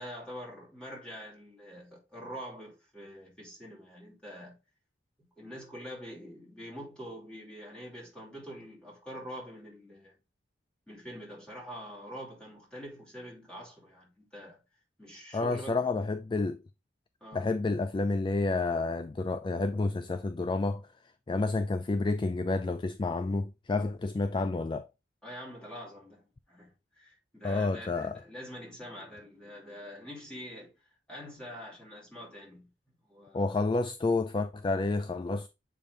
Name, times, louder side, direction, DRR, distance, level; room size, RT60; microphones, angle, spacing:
voice 1, 0.0-4.6 5.4-10.2 10.9-14.6 15.0-15.9 17.2-17.5 25.2-30.8 31.1-33.5, equal, 5° left, 3.0 m, -45 dB
voice 2, 15.3-16.6 17.3-20.8 21.3-24.9 27.4-28.2 33.3-35.5, left 3 dB, 25° left, 0.3 m, -29 dB
7.3 x 5.1 x 2.6 m
head